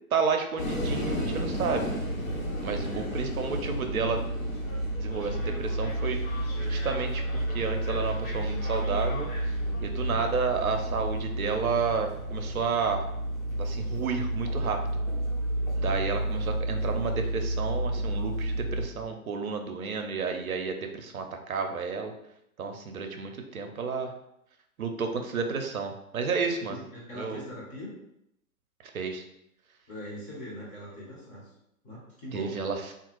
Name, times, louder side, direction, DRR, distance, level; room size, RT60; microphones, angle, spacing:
voice 1, 0.1-1.9 2.6-4.2 4.9-9.3 9.8-13.1 13.6-14.8 15.8-22.1 22.6-24.1 24.8-26.8 27.1-27.4 28.9-29.2 32.3-32.9, right 5 dB, 70° right, 4 dB, 0.6 m, -31 dB
sound 1, 0.6-18.9, right 1 dB, 65° left, 1.1 m, -31 dB
voice 2, 26.7-27.9 29.9-31.5 31.8-32.6, left 1 dB, 15° left, -4 dB, 0.8 m, -42 dB
3.5 x 2.4 x 3.0 m, 0.79 s
figure-of-eight pair, 120°, 44 cm